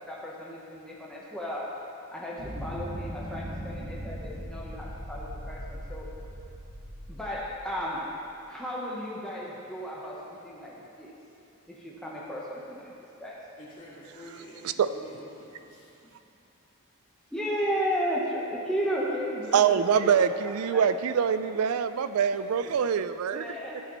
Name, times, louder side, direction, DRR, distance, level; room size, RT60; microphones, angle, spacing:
voice 1, 0.0-1.7 2.1-6.1 7.1-8.1 8.5-11.2 11.7-13.4 17.3-21.4 23.3-23.8, equal, 5° left, -6 dB, 0.9 m, -34 dB
sound 1, 2.4-8.1, equal, 50° right, 1.8 m, -39 dB
voice 2, 13.6-16.2 17.2-17.3 22.3-22.9, equal, 40° left, -8 dB, 2.5 m, -49 dB
voice 3, 19.5-23.4, right 7 dB, 90° right, 12 dB, 0.4 m, -24 dB
12.0 x 10.0 x 3.1 m, 2.8 s
head